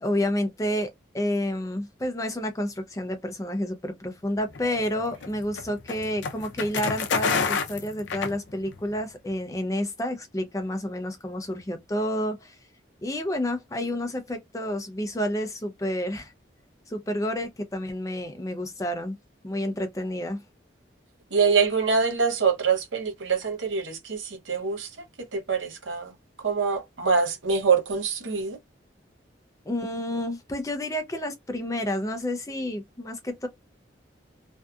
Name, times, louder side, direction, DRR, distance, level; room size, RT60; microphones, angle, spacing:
voice 1, 0.0-12.6 13.0-16.3 16.9-19.2 19.4-20.4 29.7-33.5, left 1 dB, 15° left, 0.5 m, -30 dB
sound 1, 4.5-8.9, left 5 dB, 75° left, 0.5 m, -29 dB
voice 2, 21.3-24.9 25.3-26.1 26.4-28.6, right 5 dB, 80° right, 0.8 m, -24 dB
2.6 x 2.4 x 2.2 m
head